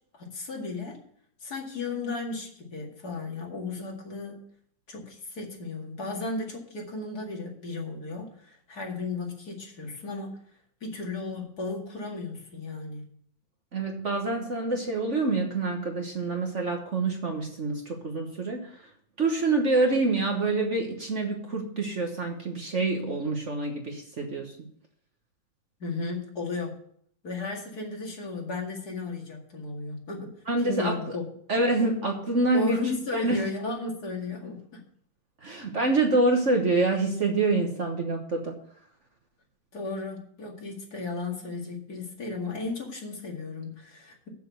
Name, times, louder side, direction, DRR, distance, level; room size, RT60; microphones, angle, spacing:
voice 1, 0.1-1.0 1.4-4.4 4.9-10.4 10.8-13.1 25.8-26.8 27.2-30.3 30.6-31.3 32.5-34.8 39.7-44.3, left 3 dB, 55° left, 0 dB, 2.6 m, -34 dB
voice 2, 13.7-18.7 19.2-24.5 30.5-31.0 31.5-32.8 33.1-33.5 35.4-38.5, right 2 dB, 45° right, 2 dB, 1.4 m, -26 dB
7.6 x 7.1 x 8.0 m, 0.64 s
omnidirectional pair, 2.0 m